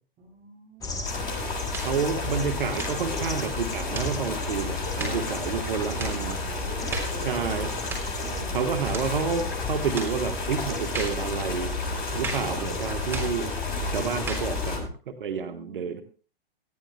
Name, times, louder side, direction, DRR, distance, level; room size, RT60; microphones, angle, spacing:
voice 1, 0.2-1.0 4.9-8.8 15.3-16.0, right 3 dB, 25° right, 0 dB, 7.3 m, -44 dB
sound 1, 0.8-14.9, left 3 dB, 10° left, 1.2 m, -33 dB
sound 2, 1.0-14.8, left 2 dB, 55° left, 7.4 m, -34 dB
sound 3, 1.7-2.0 2.7-3.1 3.9-4.2 5.0-5.2 6.0-6.2 6.9-7.2 7.9-8.1 8.9-9.1 10.0-10.2 10.9-11.2 12.2-12.5 13.1-13.4 14.3-14.5, right 3 dB, 10° right, 3.5 m, -34 dB
voice 2, 1.8-6.3 7.2-7.7 8.5-11.7 12.1-14.9 15.2-16.0, right 6 dB, 60° right, 7 dB, 1.3 m, -29 dB
19.0 x 14.5 x 2.3 m, 0.39 s
figure-of-eight pair, 120°, 29 cm